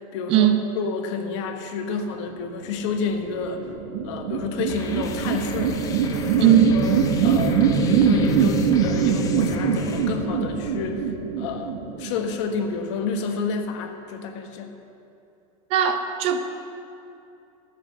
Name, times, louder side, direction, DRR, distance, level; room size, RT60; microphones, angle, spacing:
voice 1, 0.1-3.7 4.0-5.8 6.4-14.7, left 5 dB, 55° left, 6 dB, 1.2 m, -30 dB
sound 1, 2.8-12.6, right 6 dB, 90° right, 1.7 m, -23 dB
sound 2, 4.7-10.1, left 6 dB, 20° left, 0.6 m, -39 dB
voice 2, 6.4-6.7 15.7-16.4, right 11 dB, 35° right, 7 dB, 0.6 m, -18 dB
13.5 x 8.0 x 7.0 m, 2.6 s
supercardioid pair, 170°, 18 cm